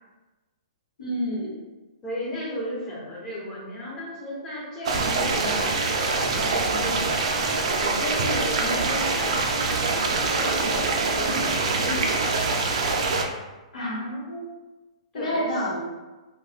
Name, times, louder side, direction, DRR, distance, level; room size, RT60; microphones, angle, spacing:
voice 1, 1.0-1.5 13.7-14.4 15.1-15.8, equal, 85° left, -4 dB, 1.2 m, -28 dB
voice 2, 2.0-7.2 7.8-10.7 11.2-12.3 15.1-15.5, left 1 dB, 20° left, -6 dB, 1.1 m, -34 dB
sound 1, 4.8-13.2, right 3 dB, 65° right, 0.4 m, -24 dB
2.5 x 2.3 x 3.3 m, 1.2 s
hypercardioid pair, 140°, 4 cm